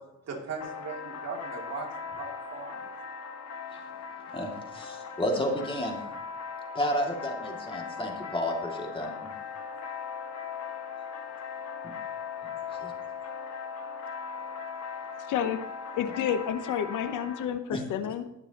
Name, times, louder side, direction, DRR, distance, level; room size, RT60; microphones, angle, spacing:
voice 1, 0.2-1.9 2.1-2.8, right 4 dB, 60° right, 0 dB, 2.6 m, -38 dB
sound 1, 0.6-17.5, left 6 dB, 60° left, 1.4 m, -39 dB
voice 2, 4.3-6.0 6.7-9.3 11.8-11.9 12.8-12.9 17.7-17.8, equal, 15° left, 1 dB, 2.3 m, -31 dB
voice 3, 15.3-15.6 15.9-18.2, left 9 dB, 90° left, 10 dB, 0.9 m, -30 dB
20.0 x 6.8 x 2.9 m, 0.89 s
cardioid pair, 90°, 30 cm